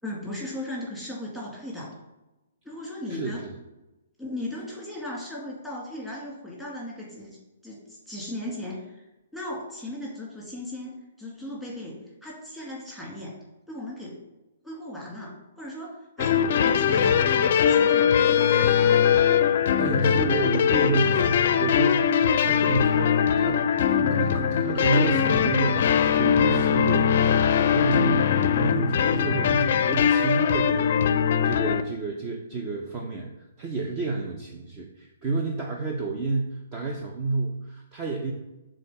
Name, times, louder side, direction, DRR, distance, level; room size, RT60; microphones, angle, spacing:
voice 1, 0.0-1.9 2.6-3.5 4.2-7.4 7.6-10.9 11.2-13.4 13.7-14.2 14.6-19.1, left 1 dB, 5° right, -5 dB, 1.9 m, -37 dB
sound 1, 16.2-31.8, left 8 dB, 50° left, 0.5 m, -21 dB
voice 2, 19.8-33.3 33.6-38.3, right 3 dB, 25° right, 1 dB, 0.7 m, -30 dB
6.5 x 3.7 x 5.5 m, 1.0 s
hypercardioid pair, 155°, 0 cm